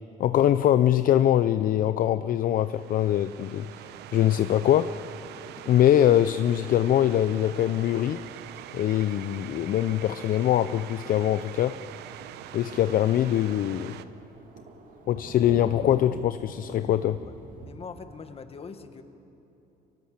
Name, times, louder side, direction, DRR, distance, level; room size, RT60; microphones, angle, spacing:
voice 1, 0.2-3.7 4.1-5.0 5.7-8.2 8.7-11.7 12.5-14.0 15.1-17.2, left 11 dB, 55° left, 12 dB, 0.5 m, -23 dB
sound 1, 2.5-14.0, right 12 dB, 80° right, 0.8 m, -43 dB
Thunder, 12.6-17.7, right 3 dB, 55° right, 2.5 m, -44 dB
voice 2, 17.0-17.3 17.6-19.0, left 5 dB, 35° left, 8 dB, 1.6 m, -42 dB
24.5 x 18.0 x 7.4 m, 3.0 s
cardioid pair, 110°, 17 cm